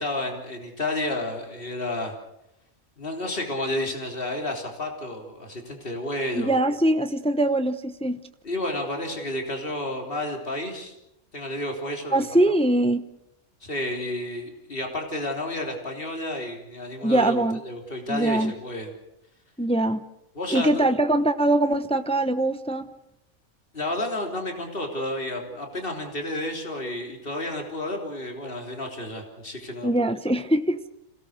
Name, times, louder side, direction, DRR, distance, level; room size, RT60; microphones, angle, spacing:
voice 1, 0.0-2.1 3.0-6.6 8.4-10.9 11.3-12.5 13.6-18.9 20.4-20.8 23.7-29.9, left 1 dB, 40° left, 3 dB, 3.7 m, -31 dB
voice 2, 6.3-8.2 12.1-13.0 17.0-17.6 18.1-18.5 19.6-20.0 20.5-22.9 29.8-30.9, right 1 dB, 5° left, 10 dB, 0.7 m, -22 dB
27.0 x 17.5 x 6.6 m, 0.84 s
omnidirectional pair, 1.5 m